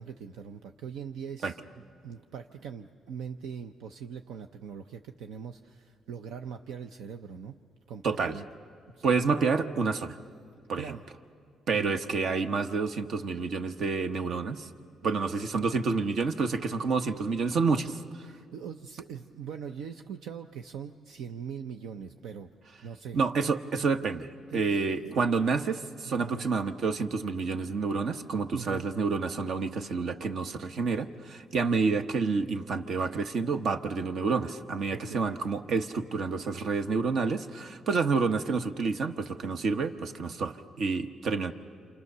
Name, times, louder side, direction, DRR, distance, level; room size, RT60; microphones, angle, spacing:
voice 1, 0.0-1.5 2.0-7.5 7.9-8.4 9.3-9.4 10.8-11.0 11.7-12.0 18.2-22.5 22.8-23.2 24.5-25.1 26.1-26.5 28.5-28.9 34.9-35.3, right 7 dB, 85° right, 6 dB, 0.7 m, -41 dB
voice 2, 8.0-8.4 9.0-10.2 10.7-11.0 11.7-14.7 15.0-18.0 23.1-41.5, right 4 dB, 65° right, 8 dB, 1.1 m, -29 dB
28.5 x 27.5 x 6.8 m, 2.3 s
cardioid pair, 90°, 0 cm